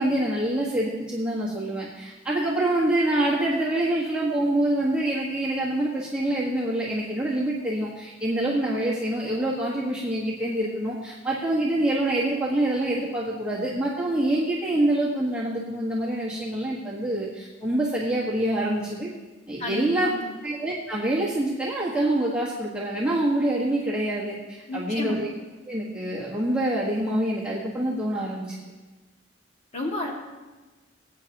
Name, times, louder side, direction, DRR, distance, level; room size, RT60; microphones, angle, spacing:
voice 1, 0.0-19.1 19.5-20.1 20.4-25.3 25.7-28.6, right 1 dB, 5° right, -7 dB, 1.5 m, -26 dB
voice 2, 19.6-20.3 24.7-25.2 29.7-30.1, left 1 dB, 30° left, -2 dB, 2.0 m, -31 dB
21.0 x 9.1 x 2.9 m, 1.2 s
head